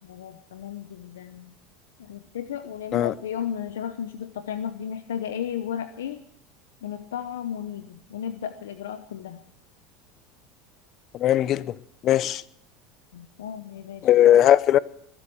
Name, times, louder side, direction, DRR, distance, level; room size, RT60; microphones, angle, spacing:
voice 1, 0.0-1.5 2.0-6.2 6.8-9.4 13.1-14.1, left 9 dB, 90° left, 0.8 m, -34 dB
voice 2, 11.1-11.7 12.0-12.4 14.0-14.8, left 11 dB, 45° left, 0.6 m, -18 dB
21.5 x 8.1 x 7.7 m
supercardioid pair, 100°, 0 cm